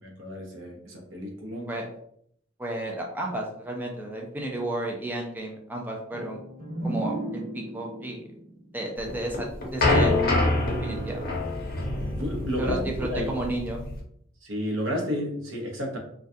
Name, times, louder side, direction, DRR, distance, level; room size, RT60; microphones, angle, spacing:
voice 1, 0.0-1.8 12.2-12.8 13.1-13.3 14.4-16.0, equal, 75° right, 1 dB, 0.7 m, -31 dB
voice 2, 2.6-6.4 6.8-8.2 8.7-10.3 10.7-11.2 12.6-13.8, right 1 dB, 10° right, 0 dB, 0.4 m, -32 dB
sound 1, 6.1-9.8, right 1 dB, 45° right, 1.1 m, -36 dB
sound 2, 9.0-14.0, left 2 dB, 50° left, 0.6 m, -26 dB
2.3 x 2.2 x 2.6 m, 0.68 s
head